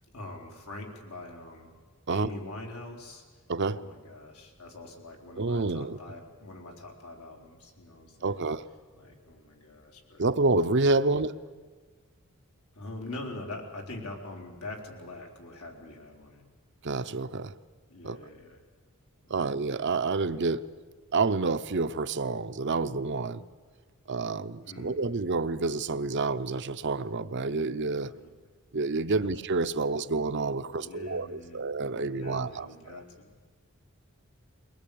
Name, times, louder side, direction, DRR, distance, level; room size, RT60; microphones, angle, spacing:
voice 1, 0.1-1.7 2.1-3.2 3.6-8.5 9.0-10.3 10.9-11.1 12.7-16.4 17.9-18.6 19.3-19.5 24.7-25.2 28.0-28.3 29.1-29.3 29.7-29.9 30.7-31.7 32.0-33.4, left 2 dB, 80° left, 1 dB, 4.0 m, -44 dB
voice 2, 5.4-6.0 8.2-8.6 10.2-11.3 16.8-17.5 18.0-18.2 19.3-20.7 21.1-23.4 24.1-28.1 28.7-32.7, right 3 dB, 55° right, 11 dB, 0.7 m, -28 dB
22.5 x 19.5 x 8.6 m, 1.5 s
head